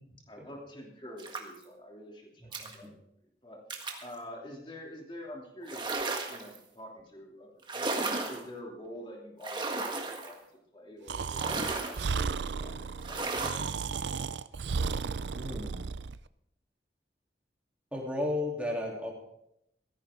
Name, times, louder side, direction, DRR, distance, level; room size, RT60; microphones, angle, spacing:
voice 1, 0.3-2.9 3.4-3.6 4.0-6.0 6.3-13.3, left 1 dB, 25° left, 0 dB, 3.0 m, -47 dB
sound 1, 1.2-1.6 2.5-2.7 3.7-4.1 5.6-6.6 7.6-8.4 9.4-10.3 11.3-12.0 13.0-13.7, right 3 dB, 25° right, 1.6 m, -34 dB
voice 2, 2.4-2.9 15.3-15.9 17.9-19.1, left 1 dB, 5° right, -3 dB, 3.3 m, -34 dB
Breathing, 11.1-16.2, right 5 dB, 80° right, 0.5 m, -34 dB
16.5 x 14.5 x 3.8 m, 0.78 s
head